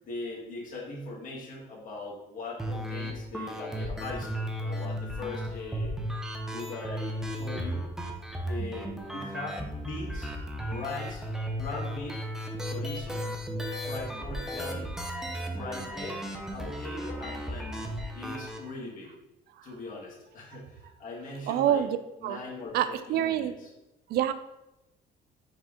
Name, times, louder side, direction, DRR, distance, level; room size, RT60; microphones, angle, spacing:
voice 1, 0.0-5.9 6.5-7.9 8.4-10.3 10.6-11.3 11.6-12.2 12.6-13.2 13.8-14.9 15.5-19.1 19.6-21.8 22.2-23.7, left 2 dB, 50° left, -3 dB, 1.5 m, -40 dB
sound 1, 2.6-18.6, equal, 5° right, 0.6 m, -35 dB
voice 2, 21.5-22.0 22.2-22.4 22.7-23.5 24.1-24.3, right 11 dB, 70° right, 12 dB, 0.4 m, -26 dB
5.4 x 2.5 x 3.6 m, 0.93 s
cardioid pair, 110°, 17 cm